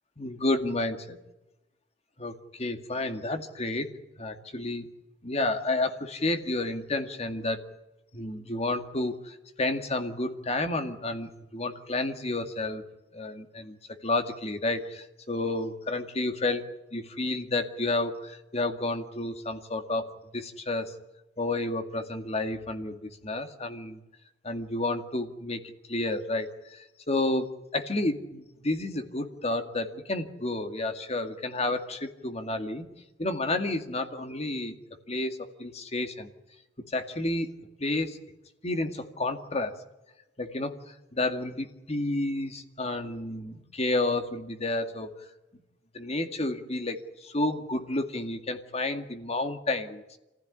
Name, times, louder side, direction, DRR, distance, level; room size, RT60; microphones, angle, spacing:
voice 1, 0.2-1.0 2.2-3.9 4.2-4.9 5.2-7.6 8.1-12.8 13.1-13.8 14.0-20.9 21.4-24.0 24.4-27.5 27.7-32.9 33.2-34.7 35.1-36.3 36.9-37.5 37.8-38.2 38.6-39.8 40.4-45.1 45.9-50.0, left 2 dB, 35° left, 7 dB, 2.1 m, -31 dB
26.5 x 15.5 x 9.8 m, 1.0 s
head